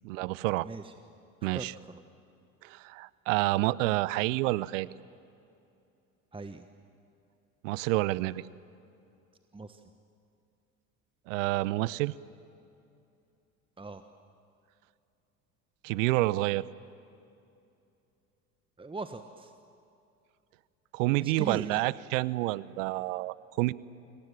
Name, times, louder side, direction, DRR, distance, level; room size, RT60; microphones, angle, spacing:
voice 1, 0.0-0.7 1.4-1.7 2.6-4.9 7.6-8.4 11.3-12.1 15.8-16.6 20.9-23.7, right 19 dB, 60° right, 21 dB, 0.8 m, -28 dB
voice 2, 0.6-0.9 1.4-2.0 6.3-6.7 9.5-9.8 13.8-14.0 18.8-19.5 21.1-21.8, right 3 dB, 10° right, 9 dB, 1.3 m, -40 dB
29.5 x 26.0 x 7.4 m, 2.6 s
figure-of-eight pair, 65°, 43 cm